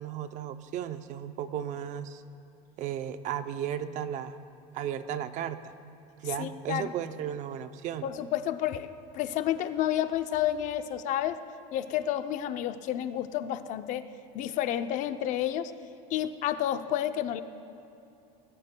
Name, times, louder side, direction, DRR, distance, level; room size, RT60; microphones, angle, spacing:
voice 1, 0.0-2.2 2.8-4.4 4.7-5.7 6.2-8.1, right 9 dB, 45° right, 10 dB, 0.6 m, -35 dB
voice 2, 6.4-6.9 8.0-11.4 11.7-14.1 14.3-15.7 16.1-17.4, left 11 dB, 45° left, 10 dB, 0.6 m, -30 dB
20.5 x 20.0 x 2.2 m, 2.7 s
cardioid pair, 150°, 17 cm